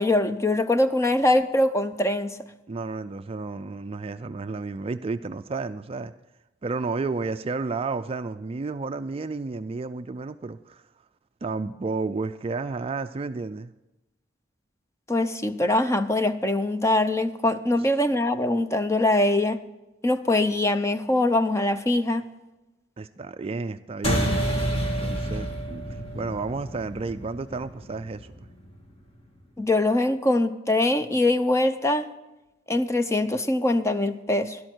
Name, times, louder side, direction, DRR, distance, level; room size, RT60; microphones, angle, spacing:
voice 1, 0.0-2.4 15.1-19.6 20.0-22.2 29.6-32.1 32.7-34.6, left 2 dB, 15° left, 10 dB, 0.6 m, -23 dB
voice 2, 2.7-6.1 6.6-10.8 11.4-13.7 23.0-24.3 25.0-28.3, right 3 dB, 30° right, 10 dB, 0.4 m, -32 dB
sound 1, 24.0-28.9, equal, 30° left, 1.8 m, -29 dB
12.5 x 11.5 x 4.5 m, 1.0 s
head